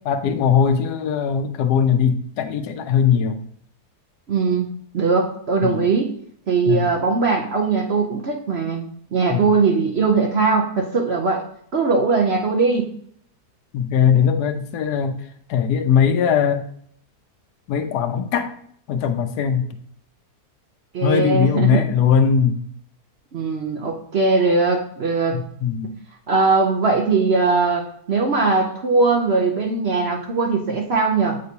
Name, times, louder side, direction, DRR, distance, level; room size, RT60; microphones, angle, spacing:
voice 1, 0.1-3.4 5.6-5.8 6.7-6.9 9.3-9.5 13.7-15.2 15.5-16.6 17.7-18.5 18.9-19.7 21.0-22.6 25.3-25.9, left 7 dB, 85° left, 9 dB, 1.2 m, -20 dB
voice 2, 4.3-4.7 4.9-6.1 6.5-11.4 11.7-12.9 20.9-21.9 23.3-25.4 26.3-31.4, right 4 dB, 55° right, 1 dB, 0.8 m, -20 dB
7.6 x 4.6 x 2.7 m, 0.64 s
omnidirectional pair, 1.7 m